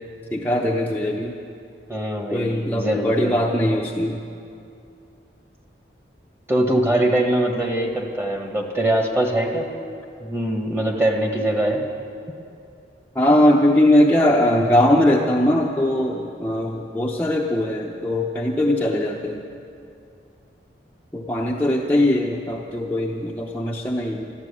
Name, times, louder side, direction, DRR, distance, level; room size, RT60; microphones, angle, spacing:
voice 1, 0.3-1.4 2.3-4.2 13.1-19.4 21.1-24.3, left 1 dB, 10° left, -3 dB, 0.7 m, -20 dB
voice 2, 1.9-3.4 6.5-9.7 10.2-11.9, right 1 dB, 15° right, 2 dB, 1.5 m, -22 dB
13.0 x 12.5 x 8.4 m, 2.6 s
head